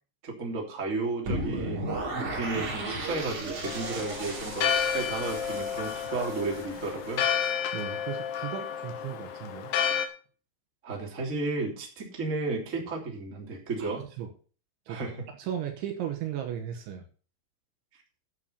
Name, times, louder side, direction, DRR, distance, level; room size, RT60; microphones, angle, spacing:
voice 1, 0.2-7.3 10.8-14.1 14.9-15.2, right 3 dB, 20° right, -1 dB, 2.5 m, -33 dB
sound 1, 1.3-7.3, right 2 dB, 40° right, 4.5 m, -35 dB
Church bell, 3.6-10.1, left 8 dB, 70° left, 3.5 m, -31 dB
voice 2, 7.4-9.7 13.8-13.9 14.2-14.3 14.9-15.1 15.4-17.0, right 10 dB, 75° right, 5 dB, 3.3 m, -36 dB
12.0 x 7.0 x 5.7 m, 0.40 s
omnidirectional pair, 5.9 m